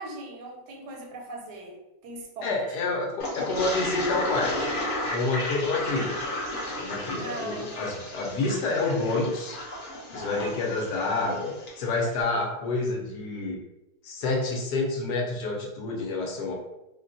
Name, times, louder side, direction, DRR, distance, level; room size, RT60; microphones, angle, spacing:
voice 1, 0.0-2.6 7.2-8.5, right 2 dB, 80° right, 1 dB, 1.2 m, -40 dB
voice 2, 2.4-4.7 5.1-6.2 6.8-9.6 10.1-13.6 14.0-16.5, left 3 dB, 75° left, 0 dB, 1.2 m, -28 dB
Toilet flush, 3.2-11.8, left 1 dB, 50° left, 0.6 m, -33 dB
3.7 x 2.2 x 2.6 m, 0.94 s
omnidirectional pair, 1.9 m